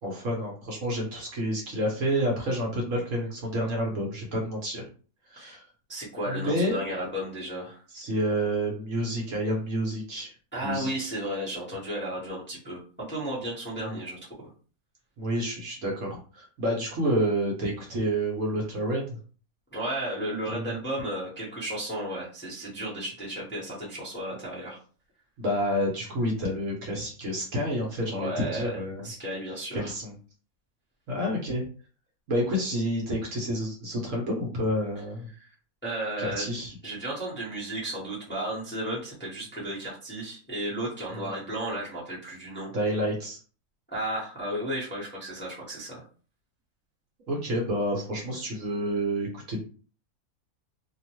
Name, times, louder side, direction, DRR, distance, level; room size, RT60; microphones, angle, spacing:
voice 1, 0.0-4.8 5.3-5.6 6.2-6.8 7.9-10.3 10.6-11.1 13.8-14.0 15.2-19.2 20.5-20.7 25.4-29.1 29.7-30.1 31.1-31.6 32.3-35.3 36.2-36.7 41.1-41.3 42.7-43.4 47.3-49.6, equal, 60° right, -1 dB, 1.1 m, -29 dB
voice 2, 5.9-7.8 10.5-14.2 19.7-24.8 28.1-28.8 29.0-29.9 35.8-36.5 36.8-42.7 43.9-46.0, right 1 dB, 10° left, -6 dB, 0.8 m, -33 dB
2.9 x 2.1 x 2.9 m, 0.39 s
omnidirectional pair, 1.6 m